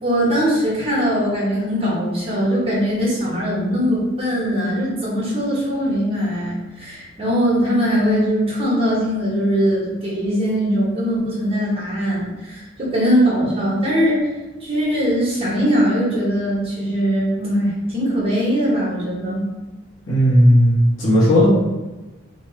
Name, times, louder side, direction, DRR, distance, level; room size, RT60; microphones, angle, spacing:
voice 1, 0.0-14.3 14.6-19.5, equal, 30° right, -7 dB, 1.1 m, -21 dB
voice 2, 20.1-21.5, equal, 80° left, -8 dB, 1.3 m, -14 dB
3.0 x 2.6 x 3.1 m, 1.1 s
head